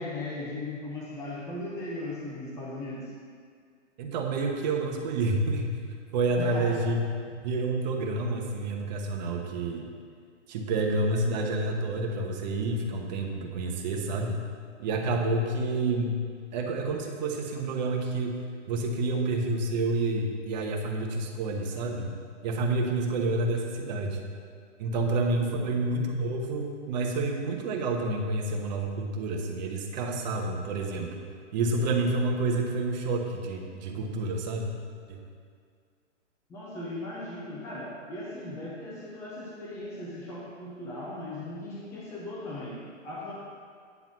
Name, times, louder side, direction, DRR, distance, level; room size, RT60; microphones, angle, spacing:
voice 1, 0.0-3.1 6.4-6.8 25.4-25.8 36.5-43.3, left 1 dB, 10° left, -5 dB, 0.7 m, -38 dB
voice 2, 4.0-5.7 6.1-9.9 10.5-14.4 14.8-16.2 16.5-18.4 18.7-22.1 22.4-24.3 24.8-31.1 31.5-34.7 35.1-35.2, right 2 dB, 35° right, 1 dB, 1.1 m, -29 dB
9.3 x 3.9 x 7.3 m, 2.1 s
hypercardioid pair, 150°, 37 cm